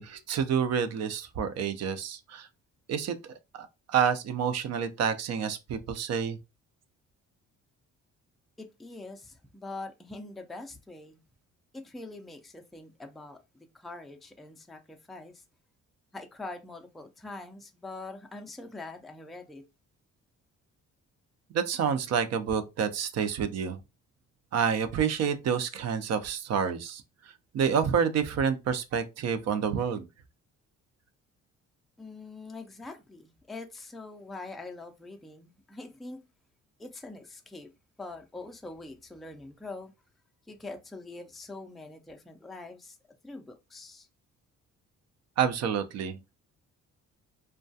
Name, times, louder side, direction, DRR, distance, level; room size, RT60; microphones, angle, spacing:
voice 1, 0.0-2.5 2.9-6.4 21.5-23.8 24.5-27.0 27.5-30.1 45.4-46.4, right 7 dB, 60° right, 0.5 m, -28 dB
voice 2, 8.6-11.2 11.7-13.4 13.7-15.4 16.1-19.6 32.0-36.2 36.8-37.7 38.0-39.9 40.5-43.0 43.2-44.1, left 2 dB, ahead, 0.3 m, -43 dB
2.2 x 2.2 x 2.6 m
cardioid pair, 90°, 30 cm